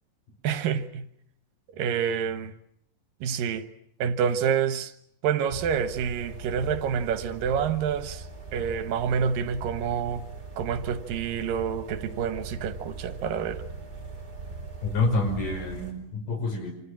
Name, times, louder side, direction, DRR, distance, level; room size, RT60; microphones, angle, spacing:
voice 1, 0.4-1.0 1.7-2.5 3.2-3.7 4.0-4.9 5.2-8.2 8.5-10.3 10.6-13.6, right 7 dB, 85° right, 3.0 m, -28 dB
sound 1, 5.5-15.9, right 3 dB, 25° right, 5.3 m, -40 dB
voice 2, 14.9-16.7, left 2 dB, 75° left, 6.9 m, -27 dB
27.5 x 26.0 x 7.3 m
omnidirectional pair, 3.9 m